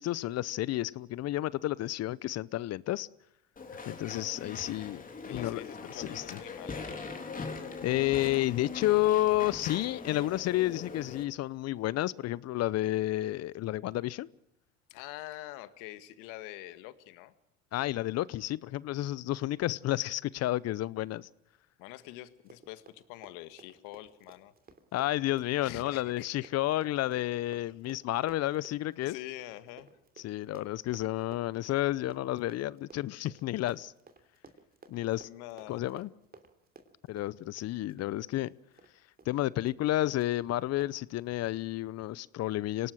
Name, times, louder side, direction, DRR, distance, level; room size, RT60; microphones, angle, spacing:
voice 1, 0.0-3.1 3.9-5.0 5.3-5.6 5.9-6.4 7.8-14.3 17.7-21.3 24.9-29.2 30.2-33.9 34.9-35.3 35.7-36.1 37.1-38.5 39.3-42.9, left 15 dB, 50° left, 0.8 m, -31 dB
Walk footsteps / Chatter / Squeak, 3.6-11.2, left 4 dB, 25° left, 3.5 m, -42 dB
voice 2, 5.2-7.1 14.9-17.3 21.8-24.5 25.6-26.3 27.6-27.7 29.0-29.9 35.2-35.8, left 16 dB, 70° left, 1.8 m, -45 dB
Run, 22.3-38.9 39.2-39.4 39.7-39.9 40.2-40.3 40.8-40.9, right 4 dB, 30° right, 3.1 m, -56 dB
26.0 x 18.5 x 6.4 m
supercardioid pair, 85°, 32 cm